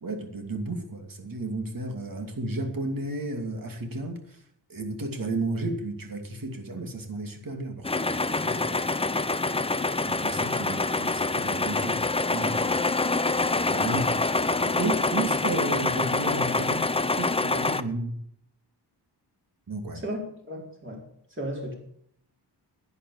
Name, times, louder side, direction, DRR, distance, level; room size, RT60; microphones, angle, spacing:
voice 1, 0.0-4.4 4.7-8.9 10.0-12.8 13.5-14.2 14.5-16.9 17.2-18.2 19.7-20.0, right 2 dB, 50° right, 5 dB, 2.7 m, -33 dB
sound 1, 7.8-17.8, left 3 dB, 15° left, 0.6 m, -26 dB
voice 2, 19.9-21.0 21.3-21.7, equal, 30° right, -1 dB, 4.4 m, -35 dB
10.5 x 10.5 x 8.4 m, 0.69 s
wide cardioid pair, 125°, 42 cm